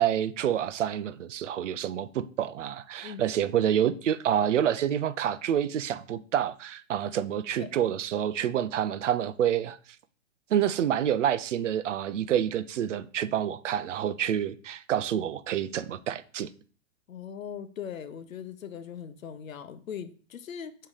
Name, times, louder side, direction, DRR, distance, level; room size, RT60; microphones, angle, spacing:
voice 1, 0.0-9.8 10.5-16.5, right 10 dB, 65° right, 0.7 m, -28 dB
voice 2, 17.1-20.8, left 8 dB, 80° left, 1.0 m, -40 dB
5.6 x 4.4 x 4.9 m
hypercardioid pair, 160°, 40 cm